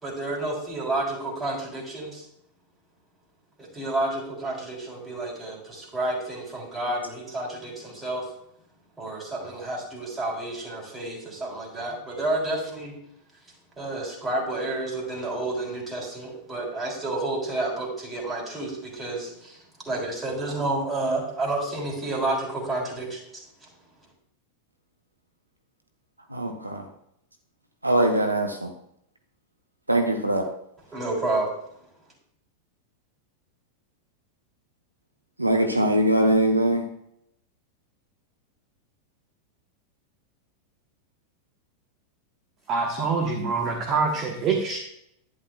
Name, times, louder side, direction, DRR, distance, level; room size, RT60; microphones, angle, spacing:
voice 1, 0.0-2.2 3.6-8.3 9.0-12.9 13.8-23.4 30.9-31.5, right 2 dB, 15° right, -2 dB, 3.3 m, -30 dB
voice 2, 26.3-26.8 27.8-28.7 29.9-30.5 35.4-36.8, right 1 dB, 85° right, 4 dB, 0.8 m, -22 dB
voice 3, 42.7-44.8, right 4 dB, 35° right, 1 dB, 1.2 m, -25 dB
11.0 x 9.7 x 2.3 m, 0.74 s
figure-of-eight pair, 90°, 0 cm